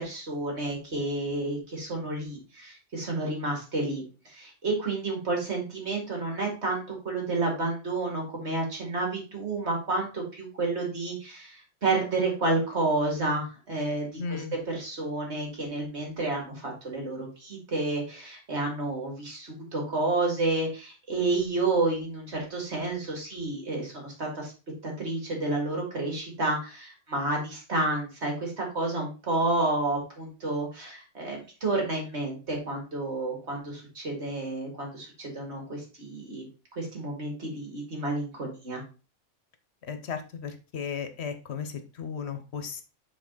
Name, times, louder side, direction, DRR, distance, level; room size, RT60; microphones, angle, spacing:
voice 1, 0.0-24.5 24.8-36.5 36.8-38.8, right 2 dB, 65° right, 0 dB, 2.4 m, -30 dB
voice 2, 14.2-14.6 39.9-42.8, left 6 dB, 65° left, 8 dB, 1.0 m, -35 dB
7.3 x 3.7 x 3.9 m, 0.33 s
omnidirectional pair, 1.2 m